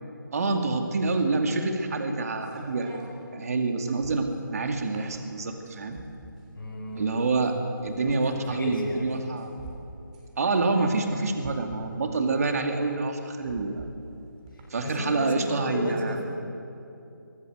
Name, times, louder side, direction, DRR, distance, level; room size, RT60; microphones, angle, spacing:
voice 1, 0.3-3.0 3.3-6.0 7.0-7.6 7.8-9.5 10.4-13.9 14.7-16.2, right 3 dB, 45° right, 4 dB, 2.4 m, -27 dB
sound 1, 1.1-14.9, right 3 dB, 20° right, 3.5 m, -48 dB
voice 2, 6.5-7.1 8.1-9.1 14.8-16.3, left 1 dB, 75° left, -7 dB, 6.9 m, -34 dB
23.5 x 18.5 x 7.9 m, 2.7 s
figure-of-eight pair, 165°, 11 cm